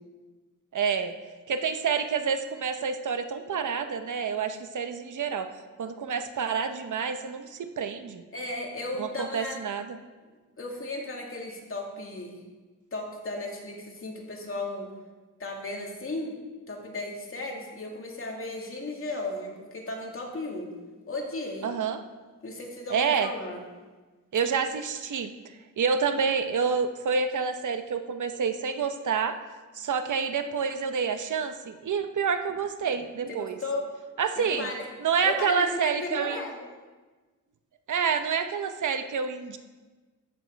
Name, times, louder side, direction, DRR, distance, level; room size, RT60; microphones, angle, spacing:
voice 1, 0.7-1.1 1.5-5.5 5.8-8.2 9.0-10.0 21.6-22.0 22.9-23.3 24.3-25.3 25.8-29.4 29.8-33.6 34.2-34.7 35.0-36.4 37.9-39.6, right 6 dB, 70° right, 8 dB, 1.0 m, -28 dB
voice 2, 8.3-9.6 10.6-12.4 12.9-14.9 15.4-16.4 16.7-20.7 21.1-21.7 22.4-23.6 33.3-33.9 34.4-34.9 35.2-36.7, left 2 dB, 40° left, 0 dB, 2.5 m, -35 dB
13.0 x 8.8 x 4.7 m, 1.3 s
wide cardioid pair, 100°, 32 cm